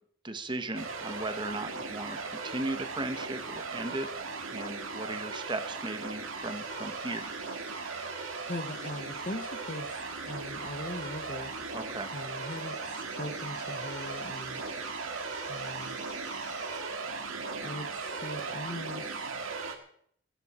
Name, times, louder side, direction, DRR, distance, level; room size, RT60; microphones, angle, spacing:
voice 1, 0.2-4.1 4.5-7.3 11.7-12.1, right 2 dB, 20° right, 9 dB, 1.2 m, -37 dB
sound 1, 0.7-19.7, right 4 dB, 65° right, 2.2 m, -37 dB
sound 2, 6.4-16.8, left 5 dB, 90° left, 4.1 m, -54 dB
voice 2, 8.5-11.5 12.1-14.6 15.5-16.0 17.6-19.4, left 1 dB, 35° left, 10 dB, 1.2 m, -40 dB
16.5 x 16.0 x 4.4 m, 0.63 s
head